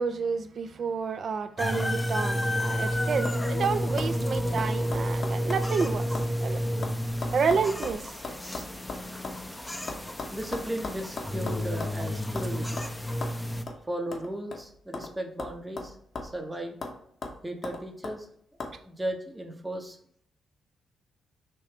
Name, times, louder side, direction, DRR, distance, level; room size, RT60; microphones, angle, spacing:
voice 1, 0.0-6.1 6.4-6.6 7.3-8.1, right 5 dB, 55° right, 10 dB, 0.3 m, -29 dB
sound 1, 1.6-13.6, equal, 10° left, 0.4 m, -30 dB
sound 2, 2.7-2.9 3.2-3.4 3.6-6.3 6.6-9.4 9.9-12.0 12.4-12.5 12.8-12.9 13.2-13.4 13.7-13.8 14.1-15.1 15.4-16.4 16.8-17.0 17.2-18.2 18.6-18.7, left 3 dB, 45° left, 0.7 m, -38 dB
voice 2, 10.3-13.3 13.8-16.0 16.2-16.8 17.4-18.3 18.8-20.0, right 1 dB, 20° right, 4 dB, 0.7 m, -36 dB
3.1 x 2.7 x 3.2 m, 0.65 s
hypercardioid pair, 40°, 0 cm